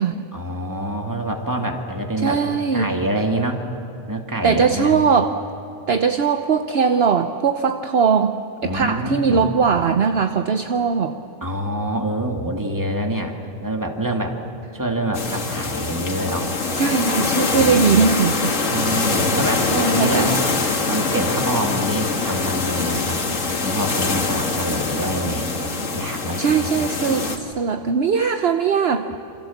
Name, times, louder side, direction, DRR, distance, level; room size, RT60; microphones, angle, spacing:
voice 1, 0.3-2.4 2.7-3.6 4.1-5.0 8.6-9.4 11.4-13.3 13.6-14.4 14.7-16.5 17.5-18.1 18.7-20.3 20.9-23.2 23.6-26.9, right 1 dB, 15° right, 2 dB, 2.4 m, -26 dB
voice 2, 2.2-2.9 4.4-5.4 5.9-11.1 16.7-18.6 19.7-20.4 26.4-29.1, right 6 dB, 55° right, 7 dB, 1.1 m, -20 dB
sound 1, 15.1-27.4, left 3 dB, 80° left, 2.3 m, -23 dB
27.5 x 26.5 x 7.3 m, 3.0 s
omnidirectional pair, 1.3 m